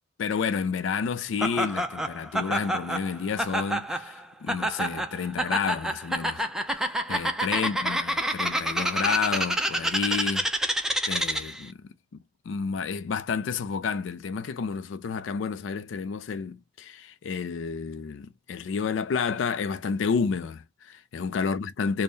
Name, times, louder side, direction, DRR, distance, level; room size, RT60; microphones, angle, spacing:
voice 1, 0.2-10.5 11.1-22.0, left 5 dB, 80° left, 0.4 m, -30 dB
Laughter, 1.4-11.6, right 1 dB, 5° right, 0.4 m, -28 dB
3.6 x 2.1 x 3.8 m
head